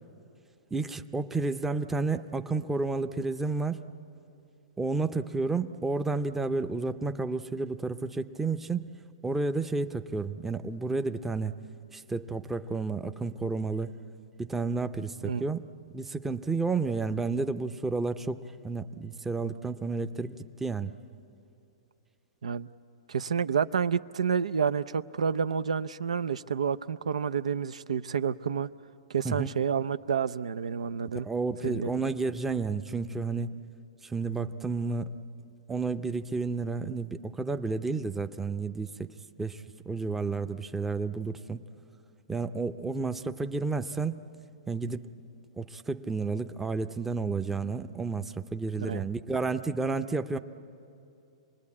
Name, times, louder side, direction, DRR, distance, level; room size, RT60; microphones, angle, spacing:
voice 1, 0.7-3.8 4.8-8.8 9.2-11.5 11.9-13.9 14.4-15.6 15.9-20.9 29.2-29.5 31.1-33.6 34.0-35.1 35.7-39.1 39.4-41.6 42.3-44.2 44.7-45.1 45.6-50.4, right 3 dB, 5° right, 9 dB, 0.6 m, -31 dB
voice 2, 23.1-28.7 29.1-31.3 31.6-32.0 48.9-49.0, right 6 dB, 90° right, 14 dB, 0.5 m, -29 dB
27.0 x 20.0 x 8.5 m, 2.7 s
hypercardioid pair, 140°, 3 cm